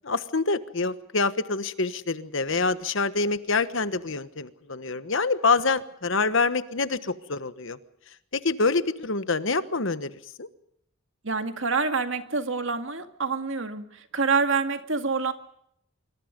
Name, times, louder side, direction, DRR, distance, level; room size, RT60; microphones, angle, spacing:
voice 1, 0.0-7.8 8.3-10.5, left 3 dB, 60° left, 13 dB, 1.3 m, -26 dB
voice 2, 11.2-15.3, right 4 dB, 60° right, 7 dB, 2.1 m, -27 dB
25.5 x 24.0 x 5.3 m, 0.72 s
head